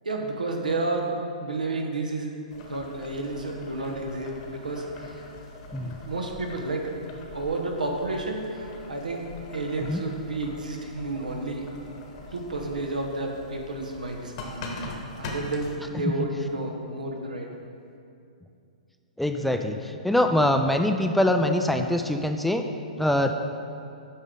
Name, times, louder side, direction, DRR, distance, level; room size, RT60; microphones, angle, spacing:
voice 1, 0.0-1.2 1.4-5.3 5.8-6.9 7.3-9.3 9.5-11.7 12.3-14.3 14.7-14.8 15.2-17.5, right 2 dB, 90° right, 1 dB, 1.0 m, -31 dB
Boiling, 2.5-15.8, left 2 dB, 50° left, 1.1 m, -42 dB
voice 2, 19.2-22.6 23.0-23.3, left 1 dB, ahead, 5 dB, 0.3 m, -23 dB
8.4 x 5.2 x 3.8 m, 2.5 s
hypercardioid pair, 125°, 4 cm